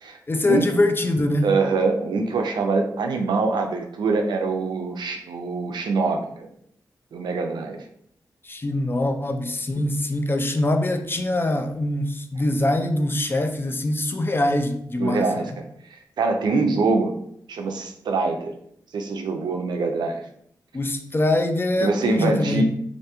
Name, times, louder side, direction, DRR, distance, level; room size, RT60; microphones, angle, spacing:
voice 1, 0.3-1.5 8.4-15.3 20.7-22.6, left 1 dB, 30° left, 6 dB, 0.4 m, -23 dB
voice 2, 1.4-6.5 7.1-7.8 15.0-15.6 16.2-17.1 17.5-18.5 18.9-20.2 21.8-22.6, right 3 dB, 75° right, 4 dB, 0.4 m, -24 dB
2.7 x 2.5 x 2.2 m, 0.69 s
cardioid pair, 45°, 8 cm